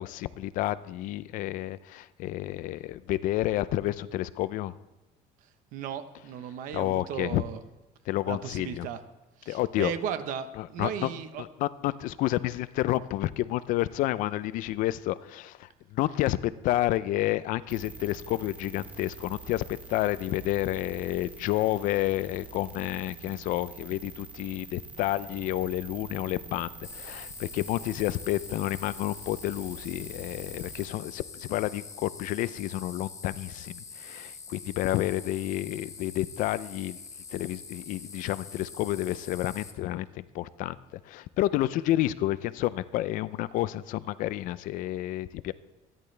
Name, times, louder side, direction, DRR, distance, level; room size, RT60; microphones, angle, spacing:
voice 1, 0.0-4.7 6.7-7.4 8.1-8.9 9.5-9.9 10.6-11.1 11.4-16.4 16.6-19.6 19.9-37.0 37.3-45.5, left 15 dB, 60° left, 16 dB, 0.5 m, -30 dB
voice 2, 5.7-7.6 8.3-9.0 9.4-11.4, right 8 dB, 60° right, 10 dB, 1.0 m, -36 dB
sound 1, 17.7-30.9, right 5 dB, 10° right, 0.9 m, -46 dB
sound 2, 26.8-39.7, left 5 dB, 20° left, 1.1 m, -45 dB
26.5 x 10.5 x 3.3 m, 1.0 s
cardioid pair, 170°, 15 cm